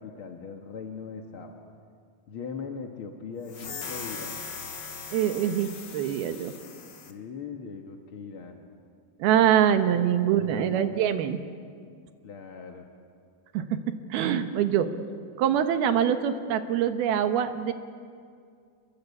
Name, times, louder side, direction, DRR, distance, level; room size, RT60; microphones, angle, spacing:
voice 1, 0.0-1.6 2.3-4.4 7.1-8.6 9.9-11.0 12.2-12.9, left 5 dB, 60° left, 3 dB, 1.4 m, -40 dB
sound 1, 3.5-7.1, left 5 dB, 75° left, 1.0 m, -39 dB
voice 2, 5.1-6.5 9.2-11.4 13.5-14.9 15.4-17.7, right 9 dB, 75° right, 8 dB, 2.9 m, -24 dB
29.0 x 22.5 x 8.4 m, 2.2 s
omnidirectional pair, 4.7 m